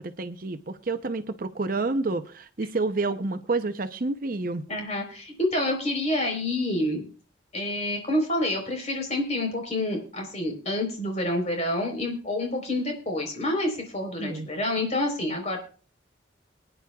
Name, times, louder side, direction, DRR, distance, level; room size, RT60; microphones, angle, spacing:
voice 1, 0.2-4.6 14.2-14.5, right 3 dB, 45° right, 10 dB, 0.7 m, -29 dB
voice 2, 4.7-7.1 7.5-15.6, left 1 dB, 35° left, 3 dB, 3.9 m, -28 dB
23.0 x 10.0 x 2.3 m, 0.39 s
head